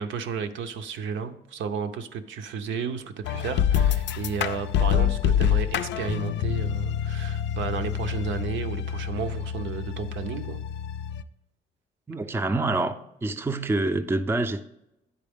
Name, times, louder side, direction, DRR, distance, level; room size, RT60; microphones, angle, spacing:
voice 1, 0.0-10.6, right 6 dB, 75° right, 0.6 m, -33 dB
sound 1, 3.2-11.2, left 9 dB, 65° left, 0.4 m, -26 dB
voice 2, 12.1-13.0 13.2-14.6, right 2 dB, 10° right, 0.4 m, -26 dB
9.7 x 4.2 x 3.6 m
cardioid pair, 90°, 20 cm